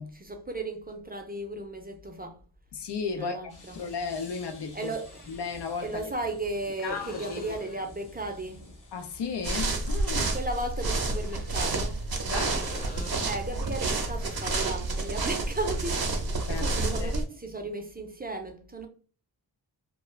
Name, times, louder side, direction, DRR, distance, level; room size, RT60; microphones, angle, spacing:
voice 1, 0.0-2.4 3.1-3.8 4.7-5.2 5.8-8.7 10.3-12.0 13.2-16.0 16.6-18.9, right 2 dB, 20° right, 0.5 m, -35 dB
sound 1, 1.4-1.5 3.6-3.7 4.9-5.7 6.8-7.9 11.1-12.1 12.4-13.5 17.1-17.2, left 2 dB, 20° left, 0.6 m, -47 dB
voice 2, 2.7-3.4 3.7-4.9 5.3-6.1 6.8-7.6 8.9-10.3 12.3-12.6 16.5-17.1, left 5 dB, 70° left, 0.6 m, -34 dB
sound 2, 3.5-9.7, left 1 dB, 45° left, 0.9 m, -50 dB
sound 3, 9.4-17.2, right 2 dB, 60° right, 0.7 m, -29 dB
2.3 x 2.2 x 3.0 m
wide cardioid pair, 80°, 42 cm